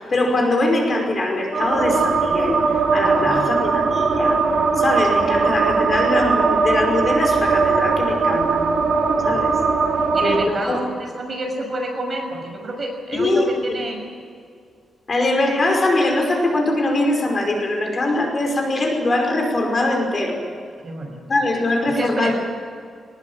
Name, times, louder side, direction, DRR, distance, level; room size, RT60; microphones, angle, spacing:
voice 1, 0.0-2.6 2.9-4.4 4.8-8.6 9.2-9.6 10.2-10.8 13.1-13.5 15.1-20.4 21.3-22.3, left 2 dB, 35° left, 2 dB, 5.3 m, -22 dB
sound 1, 1.5-10.5, right 4 dB, 50° right, 4.4 m, -19 dB
voice 2, 3.0-3.5 9.2-9.4 10.1-14.0 20.8-21.2 22.0-22.3, right 1 dB, 30° right, 2 dB, 6.3 m, -29 dB
23.0 x 20.5 x 8.8 m, 2.2 s
wide cardioid pair, 145°, 0 cm